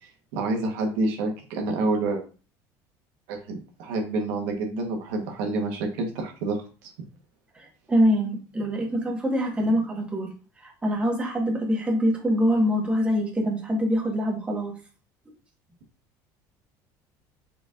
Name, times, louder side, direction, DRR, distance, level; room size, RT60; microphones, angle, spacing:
voice 1, 0.3-2.2 3.3-6.9, right 2 dB, 85° right, 2 dB, 1.1 m, -28 dB
voice 2, 7.6-10.3 10.6-14.7, equal, 15° right, 0 dB, 1.3 m, -24 dB
4.5 x 4.4 x 2.4 m, 0.36 s
cardioid pair, 130°, 9 cm